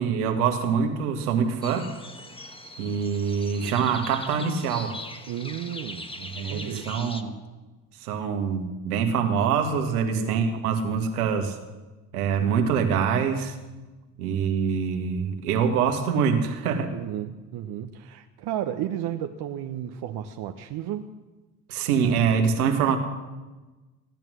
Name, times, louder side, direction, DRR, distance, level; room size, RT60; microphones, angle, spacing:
voice 1, 0.0-1.9 2.8-4.9 6.2-7.3 8.0-11.6 12.1-13.6 14.2-17.0 21.7-23.0, right 6 dB, 85° right, 5 dB, 1.8 m, -25 dB
sound 1, 1.6-7.2, left 2 dB, 10° left, 1.7 m, -41 dB
voice 2, 5.3-6.1 6.4-7.0 10.0-10.3 16.9-21.1, right 11 dB, 60° right, 7 dB, 1.0 m, -33 dB
16.5 x 10.5 x 6.3 m, 1.2 s
hypercardioid pair, 55°, 44 cm